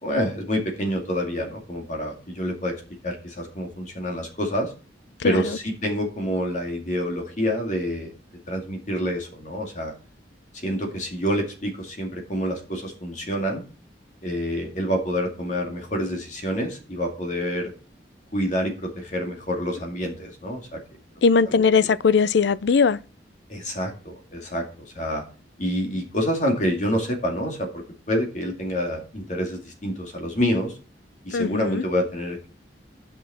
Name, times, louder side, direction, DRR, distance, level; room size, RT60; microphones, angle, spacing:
voice 1, 0.0-2.7 3.0-4.7 5.2-8.1 8.5-9.9 10.5-13.6 14.2-17.7 18.3-20.8 21.5-21.9 23.5-25.2 25.6-30.8 31.2-32.5, equal, 45° left, 2.3 m, -27 dB
voice 2, 21.2-23.0 31.3-31.8, left 5 dB, 70° left, 0.4 m, -19 dB
10.5 x 6.1 x 4.3 m
head